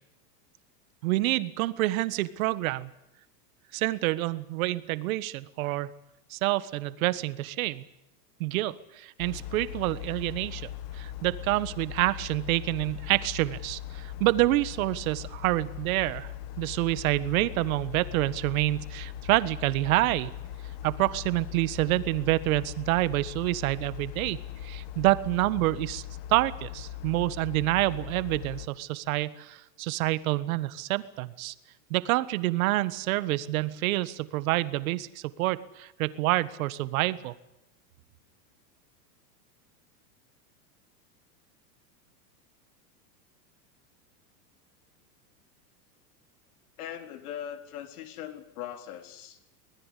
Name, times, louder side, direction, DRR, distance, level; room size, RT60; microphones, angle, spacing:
voice 1, 1.0-2.9 3.7-5.9 6.3-7.8 8.4-10.7 10.9-16.3 16.6-20.3 20.8-26.0 26.3-31.5 31.9-37.3, right 18 dB, 55° right, 15 dB, 1.6 m, -27 dB
sound 1, 9.2-28.7, left 11 dB, 45° left, 1.9 m, -40 dB
voice 2, 46.8-49.4, left 10 dB, 60° left, 8 dB, 4.1 m, -40 dB
25.0 x 19.5 x 8.4 m, 0.87 s
supercardioid pair, 165°, 50 cm